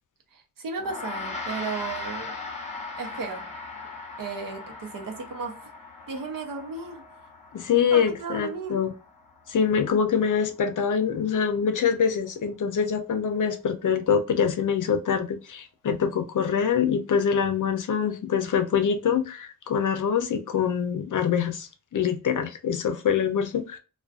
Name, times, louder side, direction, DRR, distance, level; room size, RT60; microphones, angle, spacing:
voice 1, 0.3-2.5 3.0-3.5 4.2-5.7 6.1-7.0 7.9-8.8, right 4 dB, 65° right, 0.7 m, -35 dB
Gong, 0.8-10.3, left 3 dB, 20° left, 0.7 m, -39 dB
voice 2, 7.5-8.9 9.5-23.8, left 7 dB, 55° left, 0.5 m, -25 dB
2.4 x 2.2 x 2.3 m
wide cardioid pair, 125°, 36 cm